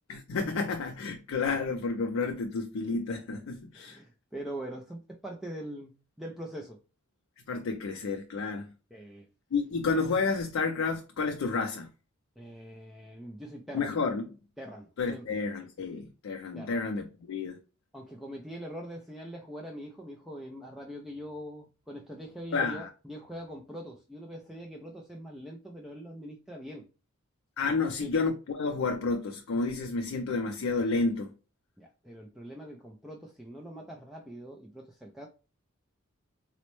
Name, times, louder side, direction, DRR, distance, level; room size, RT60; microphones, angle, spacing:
voice 1, 0.1-4.0 7.5-8.7 9.5-11.9 13.7-14.2 15.0-17.6 22.5-22.9 27.6-31.3, left 4 dB, 70° left, 0.4 m, -30 dB
voice 2, 3.7-6.8 8.9-9.3 12.4-13.9 14.6-15.4 16.5-16.8 17.9-26.8 27.8-28.1 31.8-35.3, equal, ahead, 0.3 m, -43 dB
4.1 x 2.1 x 3.0 m
head